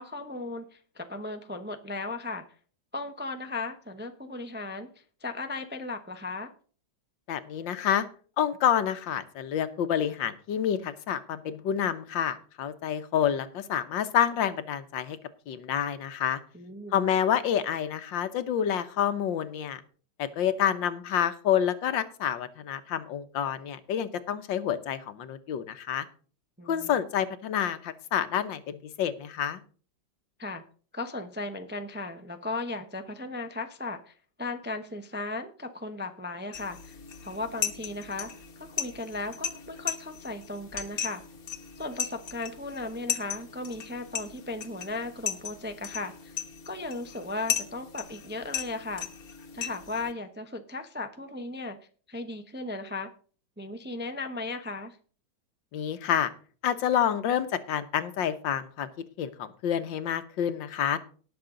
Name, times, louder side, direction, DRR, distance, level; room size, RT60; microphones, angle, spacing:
voice 1, 0.0-2.4 2.9-4.9 5.2-6.5 16.5-17.0 26.6-26.9 30.4-30.6 30.9-37.0 37.2-38.3 38.6-41.2 41.8-46.3 46.7-49.1 49.5-51.8 52.1-53.1 53.6-55.0, left 2 dB, 10° right, 6 dB, 0.6 m, -36 dB
voice 2, 7.3-8.1 8.4-15.2 15.5-16.4 16.9-19.8 20.2-26.1 26.7-29.6 55.7-56.3 56.6-58.9 59.2-61.0, left 9 dB, 75° left, 11 dB, 1.7 m, -28 dB
sound 1, 36.5-50.1, left 8 dB, 55° left, 1.7 m, -37 dB
18.5 x 6.6 x 3.8 m, 0.41 s
omnidirectional pair, 2.0 m